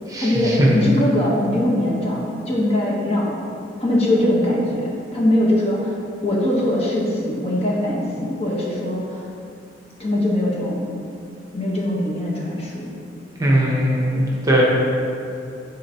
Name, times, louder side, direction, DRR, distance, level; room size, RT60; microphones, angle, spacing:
voice 1, 0.2-3.3 3.8-4.8 5.1-5.9 6.2-9.2 10.0-10.8 11.5-12.8 14.1-14.3, left 1 dB, 35° left, -4 dB, 1.0 m, -21 dB
voice 2, 13.4-14.6, right 1 dB, 20° right, -4 dB, 0.9 m, -18 dB
9.9 x 4.0 x 2.8 m, 2.6 s
head